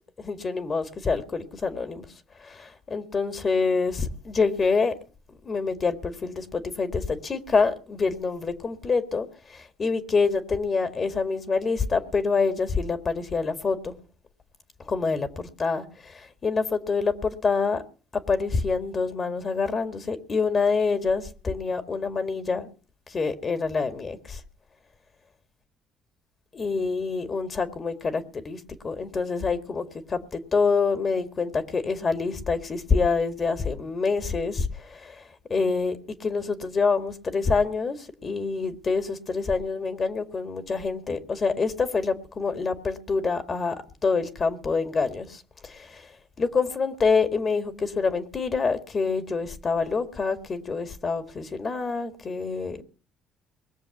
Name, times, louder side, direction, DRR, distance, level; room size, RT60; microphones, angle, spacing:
voice 1, 0.2-2.1 2.4-4.9 5.4-13.9 14.9-17.8 18.3-22.7 23.1-24.4 26.5-35.2 35.5-52.8, left 4 dB, 40° left, 1.9 m, -26 dB
20.5 x 7.1 x 7.1 m
hypercardioid pair, 55°, 0 cm